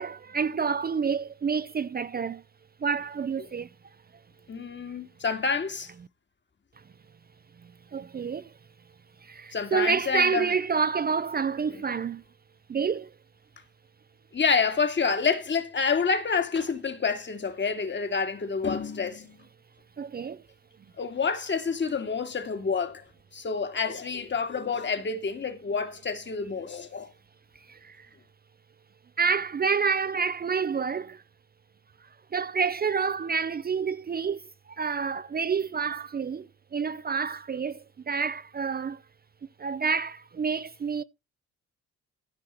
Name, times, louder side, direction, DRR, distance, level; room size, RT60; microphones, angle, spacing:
voice 1, 0.0-2.4 2.8-3.7 7.9-8.5 9.2-12.2 12.7-13.1 20.0-20.4 27.7-28.1 29.2-31.2 32.3-39.0 39.6-41.0, right 5 dB, 30° right, 0.6 m, -28 dB
voice 2, 4.5-5.9 9.5-10.5 11.7-11.8 14.3-19.4 21.0-23.0 23.3-27.1, left 5 dB, 35° left, 2.2 m, -28 dB
15.0 x 5.6 x 4.5 m
cardioid pair, 90°, 30 cm